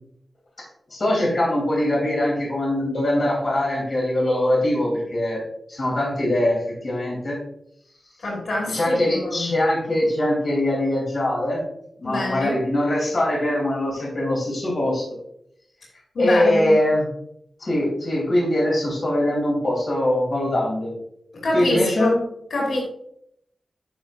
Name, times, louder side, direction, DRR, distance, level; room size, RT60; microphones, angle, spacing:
voice 1, 0.9-5.4 5.7-7.4 8.7-11.6 12.0-15.0 16.2-17.1 17.6-20.9 21.5-22.1, left 1 dB, 45° left, -4 dB, 3.4 m, -22 dB
voice 2, 8.2-9.5 12.0-12.6 16.1-16.8 21.4-22.2 22.5-22.8, left 2 dB, 85° left, -3 dB, 3.1 m, -25 dB
11.0 x 6.3 x 2.6 m, 0.71 s
wide cardioid pair, 175°, 0 cm